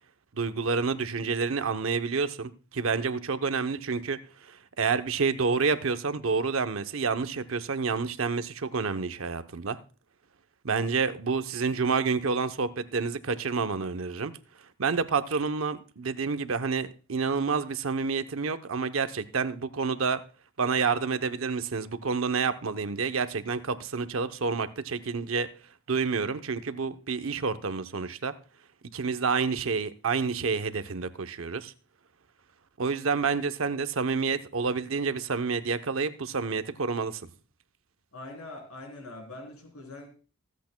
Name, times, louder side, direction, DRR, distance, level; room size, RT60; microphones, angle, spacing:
voice 1, 0.3-4.2 4.5-9.8 10.6-14.3 14.8-20.2 20.6-25.5 25.9-28.3 28.9-31.7 32.8-37.2, right 5 dB, 65° right, 0.7 m, -29 dB
voice 2, 38.1-40.1, left 2 dB, 85° left, 3.5 m, -43 dB
24.5 x 8.3 x 2.2 m
head